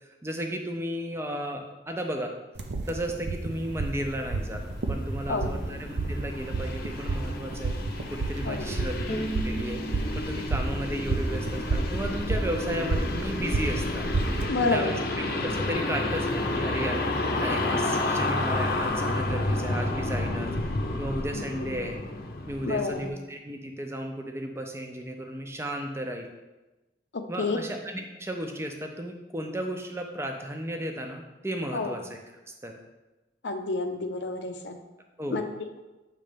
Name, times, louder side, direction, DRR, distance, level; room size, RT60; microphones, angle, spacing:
voice 1, 0.2-2.3 2.9-4.6 4.9-7.7 8.1-9.0 9.4-9.8 10.2-14.0 14.6-15.0 15.4-17.0 17.4-20.5 21.0-21.9 22.5-26.3 27.3-32.2 32.6-32.7 35.2-35.5, equal, 15° right, 3 dB, 0.6 m, -34 dB
sound 1, 2.6-14.5, right 3 dB, 85° right, 0.7 m, -31 dB
sound 2, 3.5-23.1, left 2 dB, 55° left, 0.7 m, -31 dB
voice 2, 5.3-5.6 8.5-8.6 14.5-15.0 21.3-21.8 22.7-23.1 27.1-27.6 31.7-32.0 33.4-34.8 35.3-35.4, left 3 dB, 90° left, 6 dB, 0.6 m, -29 dB
Bowed string instrument, 9.1-12.3, right 1 dB, 35° left, 0.9 m, -38 dB
7.5 x 3.2 x 5.1 m, 1.1 s
head